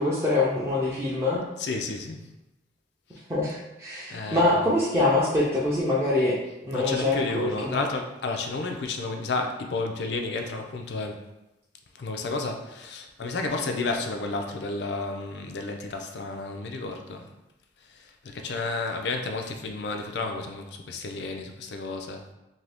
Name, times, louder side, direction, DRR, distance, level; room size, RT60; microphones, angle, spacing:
voice 1, 0.0-1.4 3.3-6.4 6.6-7.8, left 2 dB, 15° right, -7 dB, 0.4 m, -24 dB
voice 2, 1.6-2.2 4.1-4.8 6.7-11.2 12.0-17.3 17.9-22.3, left 3 dB, 75° left, 4 dB, 0.4 m, -31 dB
2.7 x 2.6 x 3.3 m, 0.95 s
head